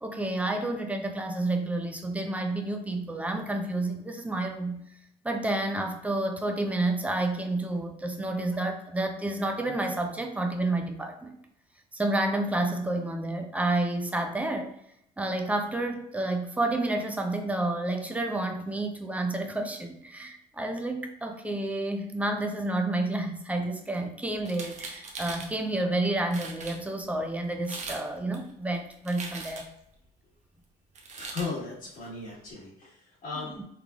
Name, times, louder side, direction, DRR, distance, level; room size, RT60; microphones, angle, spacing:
voice 1, 0.0-4.8 5.2-11.4 11.9-14.7 15.2-29.7, right 2 dB, 10° right, 4 dB, 0.5 m, -30 dB
sound 1, 24.4-25.5 26.0-26.1 26.3-26.8 27.5-28.0 28.3-29.8 30.9-31.5, right 3 dB, 45° right, 0.8 m, -40 dB
voice 2, 31.1-33.6, left 4 dB, 55° left, -6 dB, 1.4 m, -37 dB
3.7 x 3.2 x 2.3 m, 0.74 s
cardioid pair, 110°, 17 cm